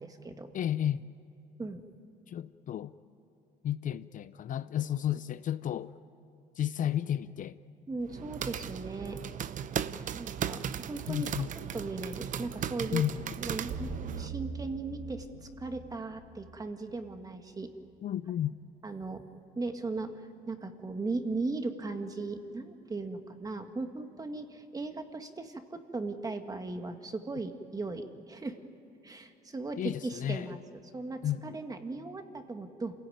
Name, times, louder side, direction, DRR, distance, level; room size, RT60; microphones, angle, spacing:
voice 1, 0.5-1.1 2.3-2.9 3.6-5.9 6.6-7.6 11.1-11.5 12.9-13.4 18.0-18.6 29.8-30.6 31.2-31.6, left 10 dB, 50° left, 0.6 m, -32 dB
voice 2, 7.9-9.2 10.1-10.6 10.9-11.3 11.7-13.0 13.4-17.7 18.8-19.2 19.5-20.2 20.5-28.6 29.0-30.6 30.9-32.9, right 3 dB, 20° right, 1.8 m, -37 dB
sound 1, 8.0-14.3, right 9 dB, 50° right, 0.8 m, -37 dB
sound 2, 13.2-17.4, right 4 dB, 85° right, 3.0 m, -42 dB
27.5 x 16.5 x 9.3 m
cardioid pair, 110°, 17 cm